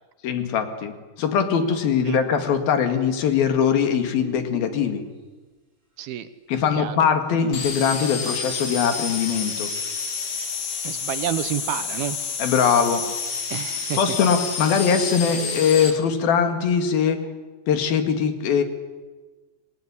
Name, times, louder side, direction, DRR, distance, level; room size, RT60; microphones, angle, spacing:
voice 1, 0.2-0.9 1.2-5.0 6.5-9.7 12.4-13.0 14.0-17.3 17.7-18.6, left 7 dB, 60° left, 7 dB, 3.7 m, -21 dB
sound 1, 3.8-5.3 7.4-7.5, right 2 dB, 15° right, 5.1 m, -40 dB
voice 2, 6.0-6.3 6.8-7.1 10.8-12.2 13.5-14.2, right 12 dB, 70° right, 12 dB, 2.6 m, -29 dB
sound 2, 7.5-15.9, left 5 dB, 40° left, 3.5 m, -29 dB
27.0 x 20.5 x 10.0 m, 1.3 s
omnidirectional pair, 5.0 m